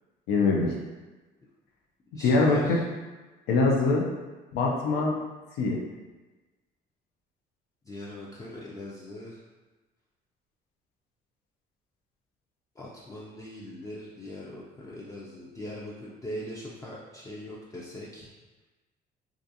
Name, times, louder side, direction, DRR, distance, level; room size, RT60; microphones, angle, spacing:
voice 1, 0.3-0.7 2.2-2.8 3.5-4.1 4.5-5.2 5.6-5.8, left 3 dB, 80° left, -1 dB, 0.5 m, -23 dB
voice 2, 2.1-2.8 7.9-9.4 12.8-18.3, left 1 dB, 20° left, -6 dB, 0.4 m, -40 dB
2.4 x 2.4 x 2.6 m, 1.2 s
cardioid pair, 110°, 17 cm